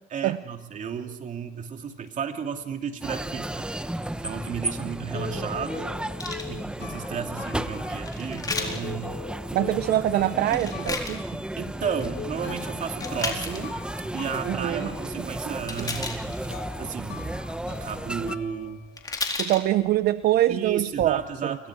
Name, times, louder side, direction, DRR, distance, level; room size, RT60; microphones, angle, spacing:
voice 1, 0.1-3.7 4.2-6.0 6.5-9.2 11.6-13.8 14.1-16.2 16.8-17.3 17.7-18.8 20.5-21.7, right 7 dB, 50° right, 5 dB, 2.6 m, -33 dB
sound 1, 3.0-18.4, right 1 dB, 5° right, 0.9 m, -34 dB
sound 2, 5.1-19.4 19.6-21.1, left 9 dB, 80° left, 2.6 m, -42 dB
sound 3, 6.2-6.5 8.0-8.8 10.5-11.2 11.7-12.1 12.9-13.6 15.7-16.5 18.6-18.7 19.0-19.6 20.2-20.3, left 3 dB, 20° left, 4.2 m, -32 dB
voice 2, 9.5-11.2 14.4-14.9 15.2-15.5 19.4-21.6, right 14 dB, 70° right, 13 dB, 0.7 m, -24 dB
29.5 x 23.5 x 5.0 m, 0.98 s
cardioid pair, 110°, 17 cm